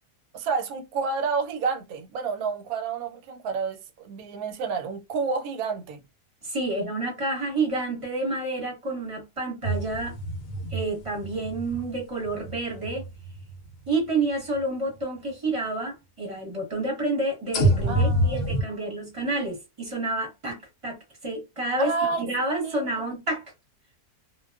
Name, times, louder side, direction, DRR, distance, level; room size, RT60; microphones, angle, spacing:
voice 1, 0.3-6.0 17.9-19.0 21.8-22.2 22.6-22.8 23.0-23.1, right 5 dB, 70° right, 1.0 m, -30 dB
voice 2, 6.4-10.1 10.7-13.0 13.9-23.4, right 2 dB, 25° right, 0.9 m, -29 dB
sound 1, 9.6-13.9 14.5-14.6 17.5-18.6, right 1 dB, 65° left, 0.9 m, -27 dB
2.4 x 2.2 x 2.2 m
omnidirectional pair, 1.7 m